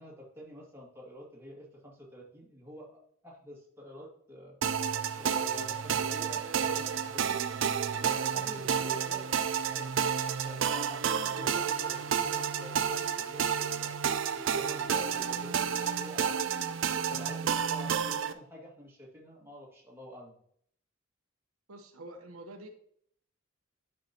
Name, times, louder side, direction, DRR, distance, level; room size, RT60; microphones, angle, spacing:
voice 1, 0.0-4.5 5.1-7.4 7.9-10.0 10.4-13.9 14.3-20.4, equal, 10° right, -4 dB, 2.1 m, -48 dB
sound 1, 4.6-18.3, right 7 dB, 60° right, 0.5 m, -30 dB
voice 2, 6.0-7.0 21.7-22.7, right 4 dB, 90° right, 4 dB, 1.0 m, -46 dB
10.5 x 5.8 x 2.9 m, 0.65 s
head